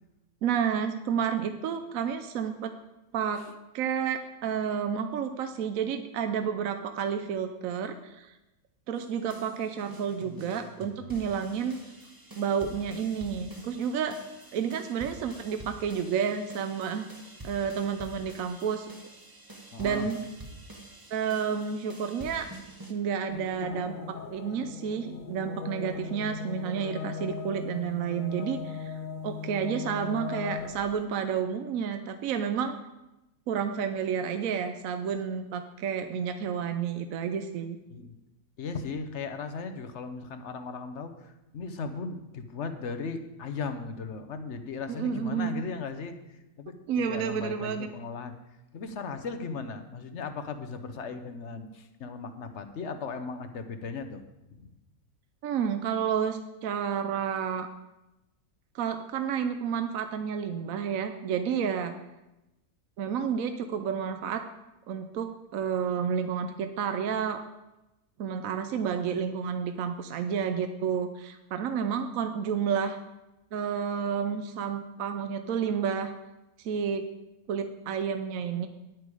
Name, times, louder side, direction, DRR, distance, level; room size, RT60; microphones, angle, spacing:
voice 1, 0.4-2.7 3.1-3.5 3.7-8.3 8.9-11.8 12.4-14.2 14.5-17.1 17.4-18.9 19.8-20.3 21.1-22.5 22.9-29.0 29.2-32.7 33.5-37.8 44.9-45.6 46.9-47.9 55.4-57.7 58.7-61.9 63.0-64.4 64.9-67.4 68.2-73.0 73.5-76.1 76.6-77.1 77.5-78.7, right 7 dB, 65° right, 7 dB, 1.0 m, -30 dB
sound 1, 8.9-22.9, right 1 dB, 15° right, 1.0 m, -47 dB
voice 2, 19.7-20.1 37.9-38.2 38.6-48.3 48.7-54.3, left 4 dB, 50° left, 8 dB, 1.1 m, -37 dB
sound 2, 23.3-31.0, left 6 dB, 70° left, 0.4 m, -38 dB
10.5 x 9.1 x 4.9 m, 0.96 s
omnidirectional pair, 1.7 m